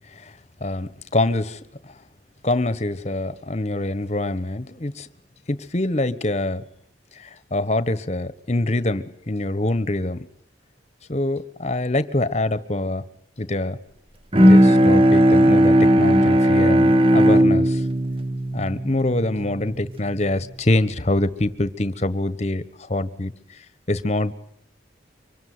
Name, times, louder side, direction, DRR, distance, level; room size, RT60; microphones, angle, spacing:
voice 1, 0.6-2.0 2.4-5.1 5.5-6.6 7.2-10.3 11.1-13.0 13.4-13.8 14.4-17.8 18.5-23.3 23.9-24.3, left 2 dB, 40° left, 15 dB, 1.3 m, -25 dB
Bowed string instrument, 14.3-19.8, equal, 30° right, 1.3 m, -16 dB
25.0 x 25.0 x 9.6 m, 0.66 s
head